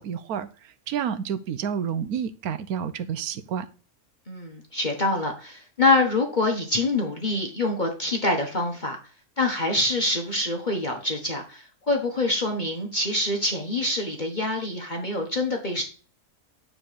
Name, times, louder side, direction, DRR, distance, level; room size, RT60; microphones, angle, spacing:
voice 1, 0.0-3.7, right 8 dB, 90° right, 1.3 m, -30 dB
voice 2, 4.3-9.0 9.4-15.8, left 2 dB, 35° left, 1.5 m, -25 dB
9.9 x 3.8 x 6.9 m
omnidirectional pair, 1.5 m